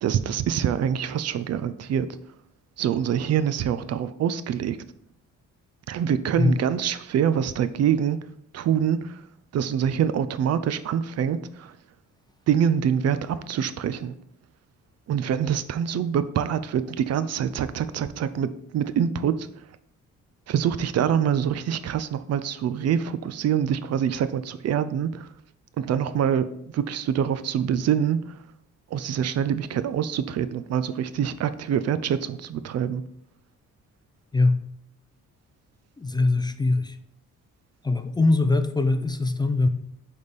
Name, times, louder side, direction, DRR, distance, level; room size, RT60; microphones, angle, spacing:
voice 1, 0.0-2.1 2.8-4.8 5.9-8.2 8.5-9.2 9.5-11.7 12.5-14.1 15.1-19.5 20.5-25.3 25.8-26.5 26.7-28.4 28.9-33.0, right 8 dB, 55° right, 13 dB, 0.5 m, -25 dB
voice 2, 36.0-37.0 37.8-39.7, left 2 dB, 15° left, 9 dB, 0.4 m, -22 dB
6.5 x 3.4 x 5.2 m, 0.73 s
cardioid pair, 90°, 30 cm